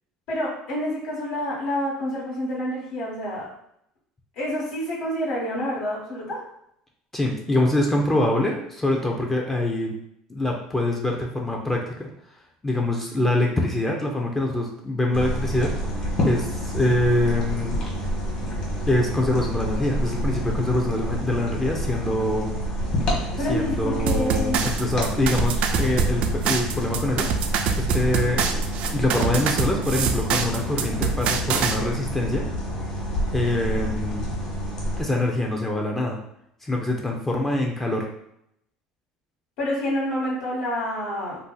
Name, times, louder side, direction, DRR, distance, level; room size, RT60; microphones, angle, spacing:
voice 1, 0.3-3.5 4.4-6.4 23.4-24.7 39.6-41.4, equal, 80° left, -6 dB, 1.3 m, -28 dB
voice 2, 7.1-9.9 10.3-12.1 12.6-15.7 16.2-17.8 18.9-22.5 23.5-27.3 27.8-28.6 28.9-32.5 33.3-34.3 35.0-36.2 36.6-38.1, left 1 dB, 15° left, 0 dB, 0.5 m, -24 dB
sound 1, 15.1-35.0, equal, 40° left, 1.2 m, -28 dB
sound 2, 24.1-31.8, right 6 dB, 60° right, 0.3 m, -25 dB
2.6 x 2.0 x 3.8 m, 0.75 s
supercardioid pair, 110°, 2 cm